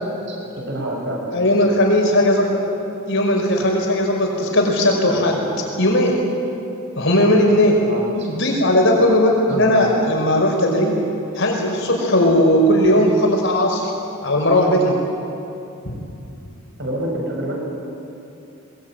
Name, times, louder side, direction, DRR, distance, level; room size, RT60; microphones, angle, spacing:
voice 1, 0.3-1.2 7.0-7.4 7.8-8.3 9.5-9.8 16.8-17.6, right 1 dB, 55° right, 0 dB, 6.2 m, -28 dB
voice 2, 1.3-2.6 3.1-5.4 5.8-6.2 6.9-7.8 8.3-11.0 11.3-13.9 14.2-14.9 15.8-16.0, left 1 dB, 60° left, 0 dB, 5.4 m, -17 dB
22.0 x 21.5 x 9.1 m, 2.8 s
head